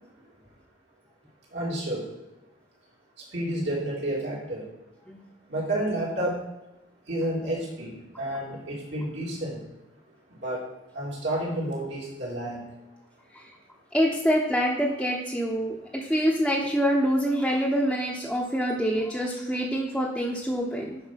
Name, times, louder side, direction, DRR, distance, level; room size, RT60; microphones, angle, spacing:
voice 1, 1.5-2.1 3.3-4.7 5.5-6.4 7.1-9.6 10.4-10.7 10.9-12.6, right 1 dB, 70° right, -5 dB, 3.2 m, -30 dB
voice 2, 13.9-21.0, equal, ahead, -4 dB, 1.0 m, -25 dB
10.5 x 4.7 x 5.8 m, 0.94 s
head